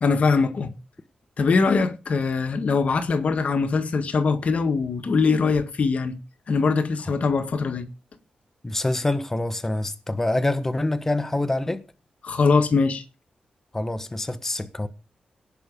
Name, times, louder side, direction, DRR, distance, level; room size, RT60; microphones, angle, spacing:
voice 1, 0.0-0.7 1.4-6.2 6.5-7.9 12.2-13.0, left 4 dB, 55° left, 1.7 m, -22 dB
voice 2, 8.6-11.8 13.7-14.9, left 2 dB, 15° left, 1.3 m, -26 dB
18.5 x 6.1 x 5.3 m
wide cardioid pair, 115°, 3 cm